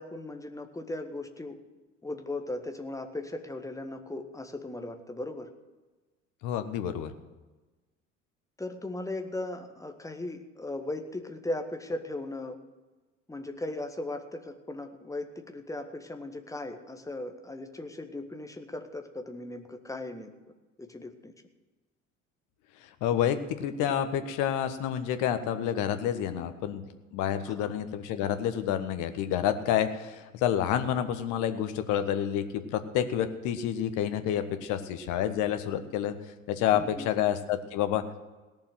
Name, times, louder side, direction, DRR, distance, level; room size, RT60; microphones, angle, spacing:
voice 1, 0.0-1.6 2.0-5.5 8.6-12.6 13.3-20.3 20.8-21.3 27.5-27.7 36.7-37.1, left 2 dB, 10° left, 6 dB, 1.6 m, -37 dB
voice 2, 6.4-7.1 23.0-26.8 27.1-36.1 36.5-38.0, left 10 dB, 50° left, 10 dB, 1.3 m, -29 dB
18.0 x 7.1 x 7.8 m, 1.2 s
figure-of-eight pair, 60°, 38 cm